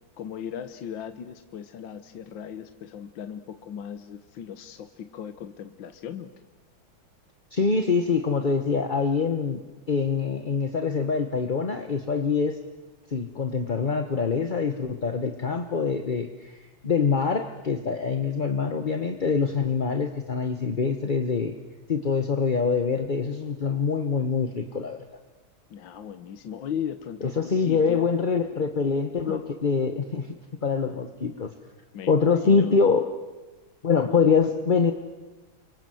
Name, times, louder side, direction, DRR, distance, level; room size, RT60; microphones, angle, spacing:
voice 1, 0.2-6.3 25.7-28.1 29.3-29.4 31.9-32.8, left 8 dB, 65° left, 9 dB, 1.7 m, -37 dB
voice 2, 7.5-9.6 9.9-12.6 13.1-21.5 21.9-25.0 27.4-30.3 30.6-31.5 32.1-33.0 33.8-34.9, left 5 dB, 30° left, 6 dB, 1.0 m, -24 dB
29.5 x 25.0 x 7.9 m, 1.1 s
omnidirectional pair, 2.3 m